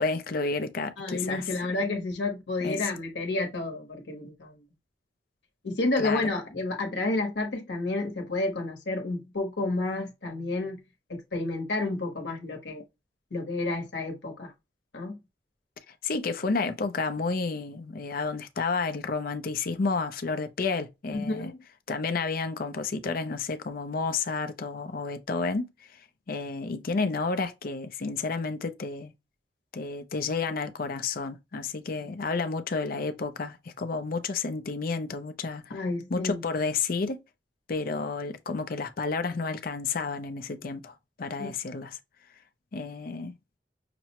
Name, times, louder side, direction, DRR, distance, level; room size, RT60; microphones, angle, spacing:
voice 1, 0.0-1.4 2.6-2.9 6.0-6.2 16.0-21.5 21.9-26.0 26.3-29.1 29.7-35.7 36.1-37.2 37.7-42.0 42.7-43.3, left 4 dB, 55° left, 0.6 m, -31 dB
voice 2, 1.0-4.6 5.6-10.8 11.1-12.8 13.3-14.5 14.9-15.2 21.1-21.6 35.7-36.4 41.4-41.5, left 2 dB, 75° left, 1.0 m, -30 dB
5.9 x 2.1 x 2.9 m
head